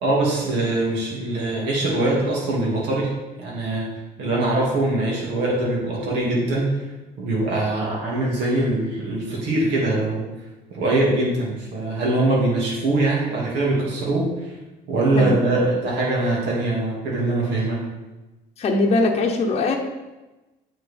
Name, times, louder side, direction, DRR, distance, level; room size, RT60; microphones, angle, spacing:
voice 1, 0.0-3.1 3.4-3.9 4.2-6.7 7.2-10.3 10.7-14.5 14.9-17.8, right 2 dB, 85° right, -4 dB, 2.1 m, -22 dB
voice 2, 18.6-19.8, left 3 dB, 40° left, 1 dB, 0.9 m, -20 dB
9.1 x 4.4 x 3.4 m, 1.1 s
cardioid pair, 110°, 17 cm